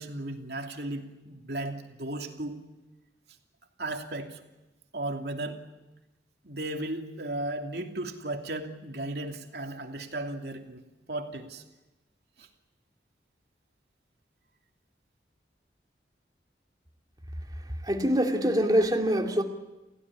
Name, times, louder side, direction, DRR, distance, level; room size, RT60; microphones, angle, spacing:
voice 1, 0.0-2.6 3.8-4.4 4.9-5.6 6.4-10.8 11.1-11.6 12.4-12.5, right 2 dB, 65° right, 3 dB, 2.9 m, -35 dB
voice 2, 17.8-19.4, equal, 20° right, 3 dB, 2.6 m, -24 dB
29.0 x 16.0 x 9.9 m, 1.1 s
head